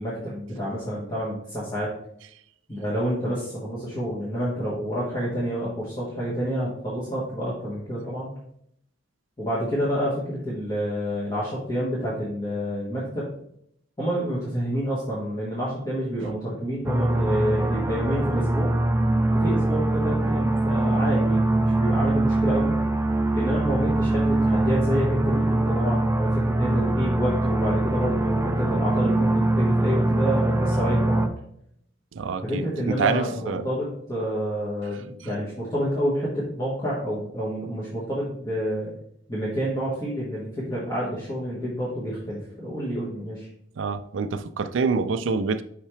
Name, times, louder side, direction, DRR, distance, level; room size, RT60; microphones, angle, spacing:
voice 1, 0.0-1.9 2.7-8.3 9.4-13.3 14.0-18.7 19.3-22.7 23.3-31.3 32.4-38.9 39.3-43.5, equal, 20° left, 1.6 m, -28 dB
sound 1, 16.8-31.3, right 2 dB, 15° right, 0.4 m, -23 dB
voice 2, 32.1-33.7 43.8-45.6, right 5 dB, 80° right, 0.4 m, -26 dB
5.7 x 5.5 x 3.4 m
head